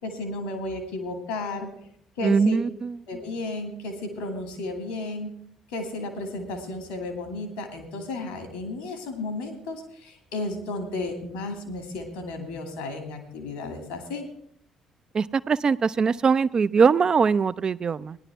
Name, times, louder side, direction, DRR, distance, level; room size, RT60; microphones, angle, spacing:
voice 1, 0.0-1.7 2.2-2.6 3.1-5.3 5.7-14.3, left 2 dB, 75° left, 5 dB, 2.1 m, -33 dB
voice 2, 2.2-3.0 15.1-18.2, right 5 dB, 40° right, 16 dB, 0.4 m, -22 dB
17.0 x 10.5 x 3.6 m, 0.66 s
figure-of-eight pair, 45°, 2 cm